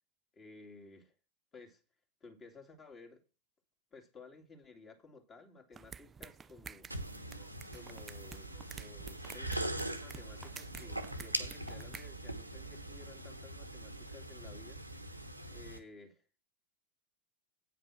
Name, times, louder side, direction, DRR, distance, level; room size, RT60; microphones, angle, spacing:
voice 1, 0.3-1.1 1.5-1.8 2.2-3.2 3.9-6.9 7.7-14.8 15.5-16.2, left 3 dB, 25° left, 2.5 m, -55 dB
sound 1, 5.7-12.1, right 6 dB, 20° right, 0.4 m, -51 dB
sound 2, 6.9-15.8, right 1 dB, 90° right, 1.3 m, -42 dB
9.5 x 5.8 x 6.1 m
figure-of-eight pair, 90°, 0 cm